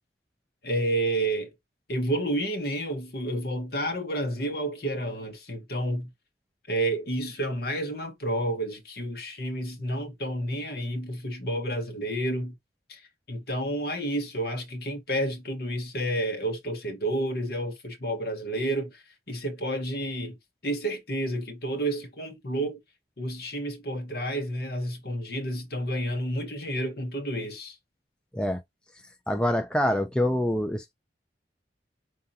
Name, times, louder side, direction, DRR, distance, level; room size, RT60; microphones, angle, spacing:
voice 1, 0.6-1.5 1.9-6.1 6.7-12.5 12.9-13.0 13.3-20.4 20.6-22.8 23.2-27.7, right 1 dB, 55° left, 1.4 m, -30 dB
voice 2, 29.3-30.9, left 1 dB, 5° left, 0.4 m, -25 dB
5.4 x 3.4 x 2.8 m
head